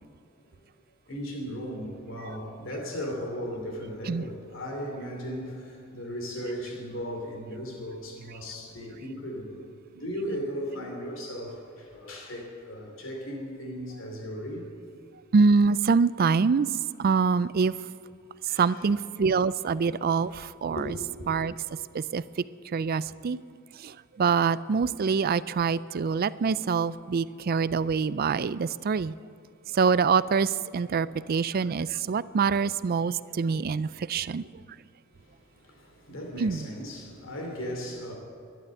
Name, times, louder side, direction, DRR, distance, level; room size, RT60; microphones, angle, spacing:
voice 1, 1.1-9.6 9.9-14.7 18.5-18.9 20.7-21.0 35.2-38.1, equal, 65° left, 1 dB, 2.9 m, -37 dB
voice 2, 15.3-16.7 17.0-17.7 18.6-20.8 21.3-21.5 21.9-22.2 22.7-23.4 23.8-29.1 29.7-34.4 36.4-36.7, right 5 dB, 45° right, 17 dB, 0.4 m, -25 dB
12.5 x 11.5 x 7.7 m, 2.6 s
head